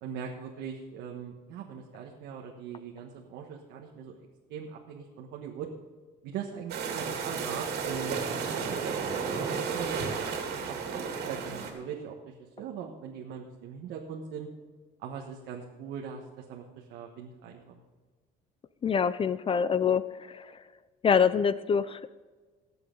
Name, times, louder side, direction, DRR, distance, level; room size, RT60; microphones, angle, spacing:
voice 1, 0.0-4.2 4.5-5.7 6.2-10.0 10.5-14.5 15.0-17.8, right 7 dB, 90° right, 0 dB, 1.4 m, -41 dB
sound 1, 6.7-11.7, right 5 dB, 75° right, 2.5 m, -33 dB
voice 2, 18.8-20.5 21.0-22.1, left 7 dB, 30° left, 15 dB, 0.4 m, -25 dB
19.5 x 7.7 x 3.9 m, 1.4 s
cardioid pair, 110°, 17 cm